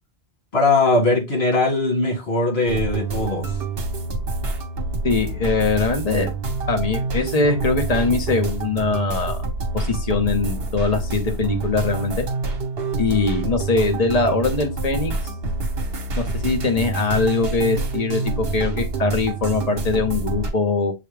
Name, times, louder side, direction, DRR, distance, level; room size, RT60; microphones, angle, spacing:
voice 1, 0.5-3.5, left 2 dB, 75° left, 2.3 m, -20 dB
sound 1, 2.7-20.5, right 3 dB, 70° right, 1.1 m, -27 dB
voice 2, 5.0-6.3 6.7-9.4 9.7-12.2 13.0-15.1 16.2-20.9, left 3 dB, 40° left, 1.1 m, -22 dB
6.7 x 2.3 x 3.3 m
omnidirectional pair, 1.1 m